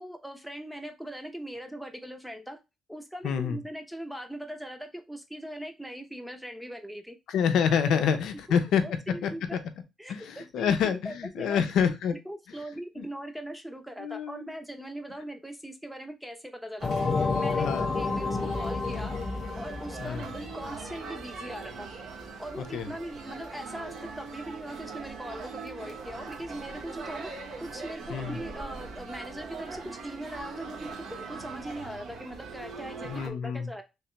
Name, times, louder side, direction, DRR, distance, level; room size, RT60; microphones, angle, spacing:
voice 1, 0.0-2.6 2.9-7.2 7.9-8.1 8.5-9.6 10.0-11.6 12.1-19.2 19.6-21.9 22.4-27.3 27.6-33.8, equal, ahead, 6 dB, 0.7 m, -40 dB
voice 2, 3.2-3.6 7.3-8.8 9.2-9.6 10.1-12.1 13.0-13.1 14.0-14.5 17.5-17.9 20.0-20.3 22.5-22.9 28.1-28.4 33.0-33.7, left 7 dB, 80° left, 8 dB, 0.6 m, -27 dB
sound 1, 16.8-21.2, left 4 dB, 35° left, 0.5 m, -30 dB
sound 2, 16.8-33.3, right 4 dB, 70° right, 0.8 m, -41 dB
3.2 x 2.9 x 3.2 m, 0.25 s
cardioid pair, 90°, 0 cm